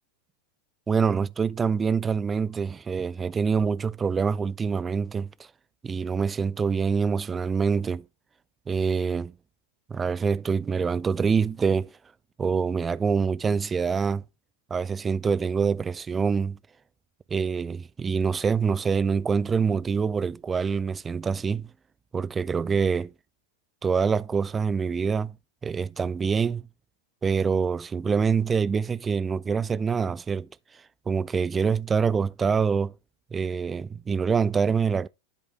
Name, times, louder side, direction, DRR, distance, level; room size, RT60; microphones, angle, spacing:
voice 1, 0.9-5.5 5.8-8.0 8.7-9.3 9.9-11.9 12.4-14.2 14.7-16.6 17.3-21.7 22.1-23.1 23.8-25.4 25.6-26.7 27.2-30.5 31.1-32.9 33.3-35.1, right 5 dB, 15° right, 0.3 m, -25 dB
11.0 x 5.0 x 3.4 m
figure-of-eight pair, 90°, 0 cm